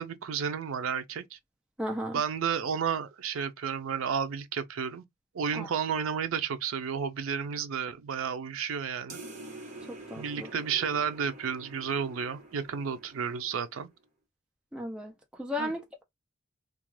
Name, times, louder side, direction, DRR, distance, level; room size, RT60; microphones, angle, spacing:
voice 1, 0.0-1.4 2.1-5.0 5.3-9.2 10.2-13.9 15.6-15.7, right 7 dB, 85° right, 0.4 m, -32 dB
voice 2, 1.8-2.2 5.5-5.7 9.9-10.5 14.7-16.0, left 1 dB, 5° right, 0.5 m, -35 dB
sound 1, 9.1-14.0, right 2 dB, 40° right, 0.9 m, -47 dB
2.3 x 2.3 x 3.1 m
head